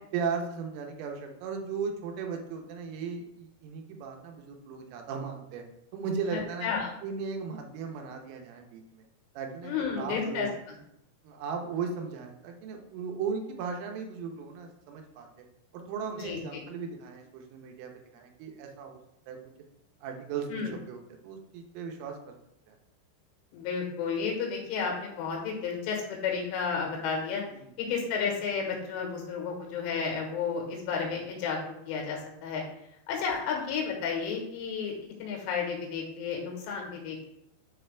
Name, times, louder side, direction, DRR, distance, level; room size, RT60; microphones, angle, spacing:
voice 1, 0.1-5.6 5.9-6.7 7.0-9.0 9.4-10.5 11.2-15.3 15.7-19.0 19.3-19.4 20.0-22.3 22.7-22.8 27.5-27.7, right 5 dB, 85° right, 3 dB, 3.4 m, -36 dB
voice 2, 6.3-6.9 9.6-10.8 16.2-16.6 20.5-20.7 23.5-27.4 27.8-31.6 31.9-32.6 33.1-34.9 35.2-37.3, left 6 dB, 90° left, 0 dB, 3.7 m, -32 dB
9.1 x 4.0 x 3.4 m, 0.78 s
omnidirectional pair, 5.7 m